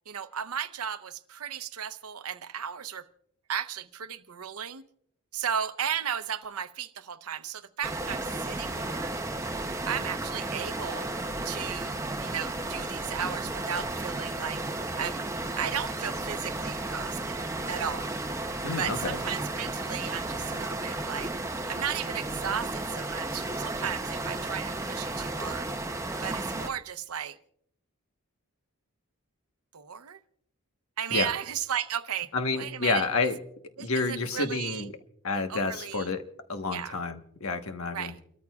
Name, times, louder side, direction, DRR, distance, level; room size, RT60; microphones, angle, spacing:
voice 1, 0.1-3.1 3.5-4.8 5.3-9.2 9.8-11.1 11.4-14.7 14.9-15.2 15.6-17.4 17.7-18.2 18.8-21.3 21.7-25.7 26.2-27.4 29.7-30.2 31.0-33.1 33.8-34.8 35.5-36.1 36.7-37.0 37.9-38.2, right 8 dB, 85° right, 0.8 m, -35 dB
sound 1, 7.8-26.7, right 2 dB, 15° right, 0.7 m, -33 dB
voice 2, 18.6-19.2 31.1-31.3 32.3-33.4 33.8-34.9 35.2-36.2 36.5-38.1, left 3 dB, 75° left, 1.3 m, -29 dB
29.5 x 13.5 x 2.4 m
head